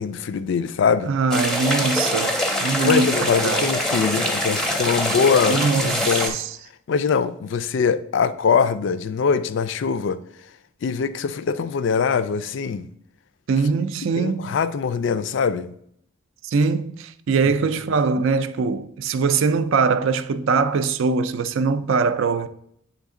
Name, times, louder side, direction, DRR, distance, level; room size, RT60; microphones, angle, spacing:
voice 1, 0.0-1.1 2.8-6.4 6.9-10.2 10.8-12.9 14.1-15.7 17.4-17.6, left 6 dB, 60° left, 0.3 m, -22 dB
voice 2, 1.1-3.7 5.5-6.4 13.5-14.5 16.4-22.5, right 4 dB, 70° right, 0.4 m, -22 dB
sound 1, 1.3-6.3, equal, ahead, 0.6 m, -24 dB
8.4 x 3.5 x 3.6 m
head